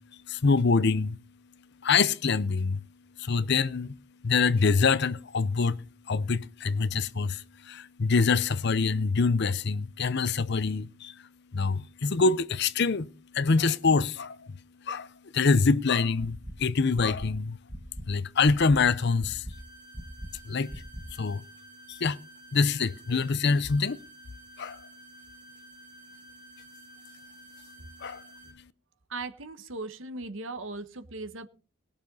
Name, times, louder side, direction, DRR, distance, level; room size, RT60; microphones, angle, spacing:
voice 1, 0.3-1.2 1.8-2.8 3.2-4.0 4.2-11.2 11.5-13.1 13.3-14.6 14.8-17.6 18.1-19.4 20.4-20.7 21.2-21.4 21.9-22.2 22.5-24.0 24.6-24.9 28.0-28.2, left 4 dB, 55° left, 0.6 m, -25 dB
sound 1, 16.2-16.5 16.9-17.3 17.7-18.1 18.4-18.8 19.2-19.5 19.9-20.3 20.7-21.0, equal, ahead, 1.9 m, -39 dB
sound 2, 19.5-28.5, right 2 dB, 30° right, 7.9 m, -52 dB
voice 2, 29.1-31.5, right 3 dB, 70° right, 1.4 m, -38 dB
19.5 x 6.9 x 5.4 m
head